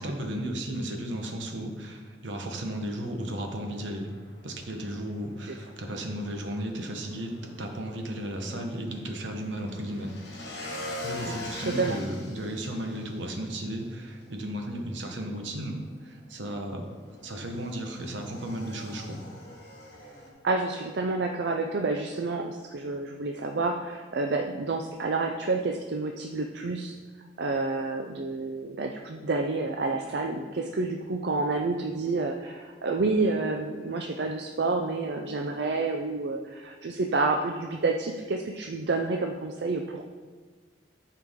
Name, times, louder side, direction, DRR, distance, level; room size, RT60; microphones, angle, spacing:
voice 1, 0.0-4.1 4.4-10.1 11.0-19.2, right 1 dB, 80° right, 4 dB, 1.1 m, -34 dB
Motorcycle / Engine, 2.9-20.3, left 1 dB, 60° left, 1.9 m, -44 dB
voice 2, 11.6-12.0 20.4-26.9 27.4-40.1, right 3 dB, 60° right, 3 dB, 0.5 m, -29 dB
12.5 x 4.7 x 3.7 m, 1.5 s
head